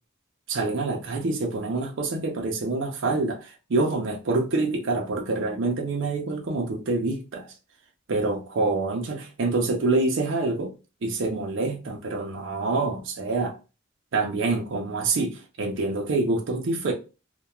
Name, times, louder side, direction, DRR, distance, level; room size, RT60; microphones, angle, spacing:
voice 1, 0.5-7.5 8.1-10.7 11.0-13.6 14.1-16.9, right 3 dB, 65° right, 0.5 m, -26 dB
2.3 x 2.2 x 2.9 m
head